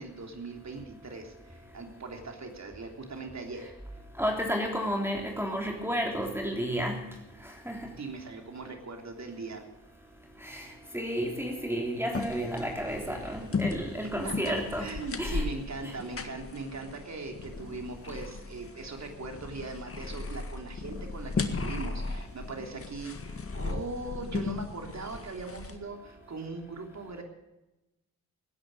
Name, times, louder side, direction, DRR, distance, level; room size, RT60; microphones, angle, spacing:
voice 1, 0.0-3.7 8.0-9.6 14.2-27.2, right 3 dB, 45° right, 3 dB, 3.3 m, -40 dB
voice 2, 4.2-7.0 7.4-7.9 10.4-10.7 10.9-14.9 15.2-15.5 15.8-15.9, equal, 5° right, 1 dB, 3.5 m, -31 dB
sound 1, 12.1-25.8, left 4 dB, 35° left, 1.8 m, -37 dB
18.5 x 10.5 x 6.3 m, 0.99 s
hypercardioid pair, 45°, 38 cm